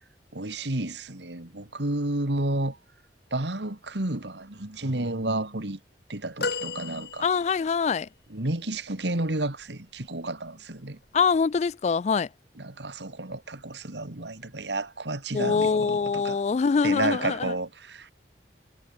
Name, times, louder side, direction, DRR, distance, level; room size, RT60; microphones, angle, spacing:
voice 1, 0.3-2.8 3.3-5.8 6.1-7.3 8.3-11.0 12.6-16.4 16.8-18.1, right 2 dB, 80° right, 2.4 m, -31 dB
sound 1, 6.4-7.8 8.6-8.7, left 4 dB, 60° left, 2.0 m, -33 dB
voice 2, 7.2-8.1 11.1-12.3 15.3-17.5, left 5 dB, 40° left, 0.3 m, -24 dB
head